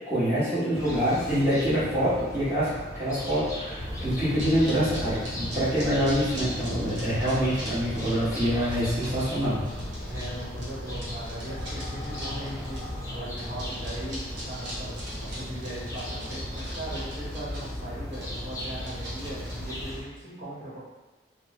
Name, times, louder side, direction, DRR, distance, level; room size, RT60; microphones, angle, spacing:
voice 1, 0.1-9.6, equal, 15° right, -13 dB, 1.1 m, -26 dB
sound 1, 0.8-20.0, left 1 dB, 15° left, 0.5 m, -38 dB
sound 2, 3.8-19.9, left 1 dB, 75° right, 0.9 m, -37 dB
voice 2, 10.0-20.8, right 1 dB, 50° right, -9 dB, 1.2 m, -39 dB
3.1 x 2.0 x 2.9 m, 1.1 s
head